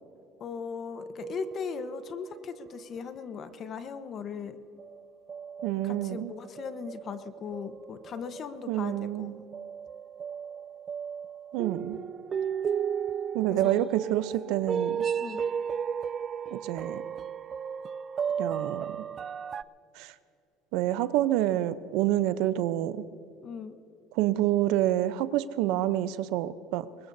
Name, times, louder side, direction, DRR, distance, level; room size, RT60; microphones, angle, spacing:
voice 1, 0.4-4.6 5.8-9.3 13.5-13.8 15.2-15.5 23.4-23.8, left 6 dB, 40° left, 10 dB, 1.1 m, -38 dB
sound 1, 1.2-3.0 3.5-3.7 4.8-19.6, right 7 dB, 35° right, 0.3 m, -35 dB
voice 2, 5.6-6.3 8.7-9.4 11.5-12.0 13.3-15.0 16.5-17.0 18.4-18.9 20.0-20.1 20.7-23.0 24.2-26.9, right 13 dB, 75° right, 14 dB, 0.7 m, -27 dB
23.0 x 20.0 x 2.7 m, 2.6 s
supercardioid pair, 110°, 0 cm